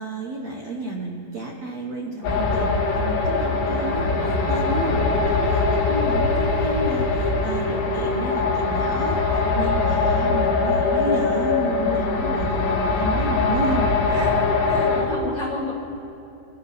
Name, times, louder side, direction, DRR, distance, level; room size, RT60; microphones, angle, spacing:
voice 1, 0.0-5.0 5.2-14.9, right 2 dB, 85° right, -1 dB, 1.5 m, -31 dB
sound 1, 2.2-15.0, left 3 dB, 80° left, 4.2 m, -22 dB
voice 2, 4.8-5.2 14.7-15.7, left 3 dB, 55° left, -4 dB, 1.7 m, -31 dB
23.0 x 14.0 x 3.5 m, 2.8 s
omnidirectional pair, 5.0 m